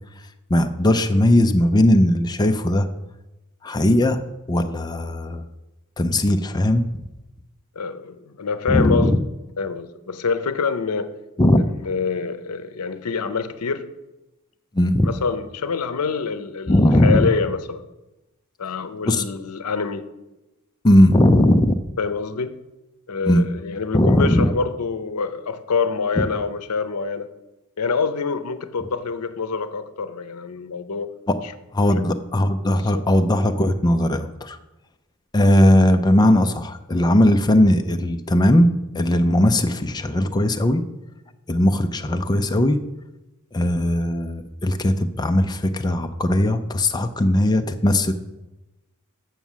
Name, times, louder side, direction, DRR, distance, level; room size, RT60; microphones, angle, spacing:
voice 1, 0.5-2.9 3.6-4.2 4.5-5.5 6.0-6.8 8.7-9.2 11.4-11.7 14.7-15.1 16.7-17.3 19.0-19.2 20.8-21.8 23.2-23.4 23.9-24.5 31.3-31.4 31.7-34.6 35.3-40.8 41.5-42.8 43.5-48.1, left 1 dB, 20° left, 6 dB, 0.5 m, -18 dB
voice 2, 7.8-9.1 9.6-11.1 11.6-13.9 15.0-17.8 18.6-20.0 22.0-22.6 23.1-27.3 27.8-31.1, left 5 dB, 85° left, 12 dB, 0.7 m, -26 dB
7.1 x 6.0 x 7.3 m, 1.0 s
head